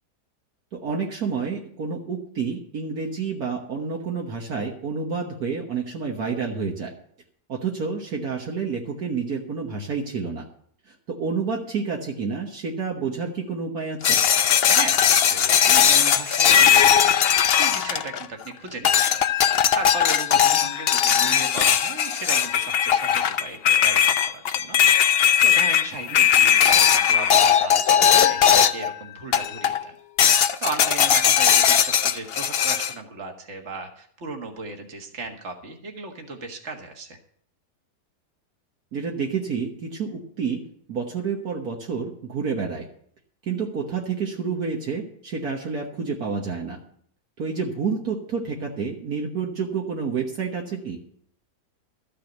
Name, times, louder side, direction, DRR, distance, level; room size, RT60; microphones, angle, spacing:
voice 1, 0.7-6.9 7.5-10.4 10.9-14.2 38.9-40.6 40.9-42.9 43.5-46.8 47.4-51.0, right 5 dB, 65° right, 0 dB, 1.8 m, -29 dB
sound 1, 14.0-18.4 18.8-28.9 29.3-29.8 30.2-32.9, left 8 dB, 70° left, 0.5 m, -19 dB
voice 2, 14.7-17.2 17.5-24.8 25.0-30.0 30.6-37.2, right 3 dB, 45° right, 4 dB, 2.0 m, -36 dB
13.5 x 6.7 x 7.9 m, 0.63 s
omnidirectional pair, 1.8 m